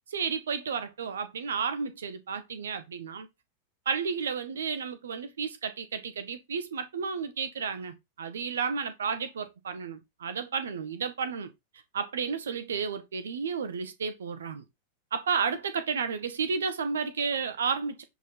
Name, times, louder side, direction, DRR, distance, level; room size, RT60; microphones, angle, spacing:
voice 1, 0.1-3.3 3.8-11.5 11.9-14.6 15.1-18.0, right 6 dB, 65° right, 1.6 m, -32 dB
9.9 x 5.3 x 3.9 m
figure-of-eight pair, 90°, 0 cm